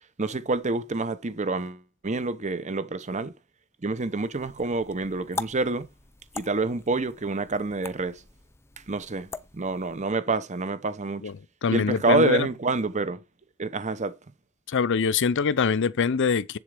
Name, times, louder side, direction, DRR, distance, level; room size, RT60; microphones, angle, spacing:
voice 1, 0.2-3.3 3.8-5.9 6.3-8.2 8.9-9.3 9.5-11.2 11.7-13.2 13.6-14.2, right 3 dB, 35° right, 0.8 m, -27 dB
sound 1, 4.2-10.0, left 3 dB, 10° left, 0.5 m, -42 dB
voice 2, 11.6-12.5 14.7-16.6, left 5 dB, 55° left, 0.5 m, -24 dB
7.6 x 7.4 x 4.9 m
head